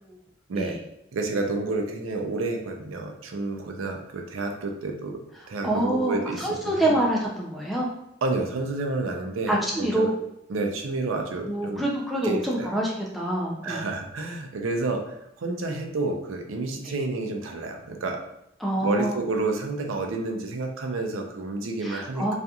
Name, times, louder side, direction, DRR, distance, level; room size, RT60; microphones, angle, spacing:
voice 1, 1.1-5.2 5.5-6.9 8.2-10.1 10.5-11.8 12.2-12.7 13.6-18.2 18.7-22.3, right 3 dB, 90° right, 3 dB, 0.4 m, -30 dB
voice 2, 5.6-7.9 9.5-10.2 11.5-13.9 16.8-16.9 18.6-19.1 21.8-22.3, right 1 dB, ahead, -3 dB, 0.3 m, -26 dB
2.7 x 2.4 x 2.3 m, 0.81 s
head